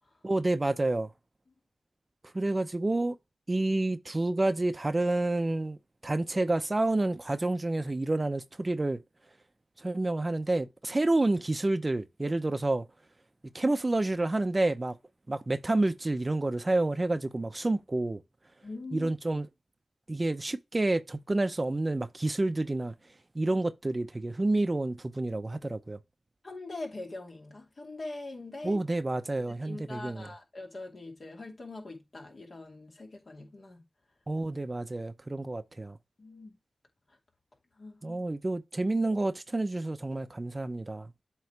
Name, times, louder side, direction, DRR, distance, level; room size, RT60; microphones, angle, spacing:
voice 1, 0.2-1.1 2.3-3.2 3.5-5.8 6.0-9.0 9.8-12.9 13.5-14.9 15.3-18.2 18.9-19.5 20.1-22.9 23.3-26.0 28.6-30.3 34.3-36.0 38.0-41.1, right 2 dB, 35° right, 0.7 m, -29 dB
voice 2, 18.6-19.1 26.4-28.8 29.6-33.8 36.2-36.6 37.8-38.2, left 2 dB, 60° left, 2.4 m, -42 dB
7.9 x 3.1 x 4.7 m
cardioid pair, 50°, 0 cm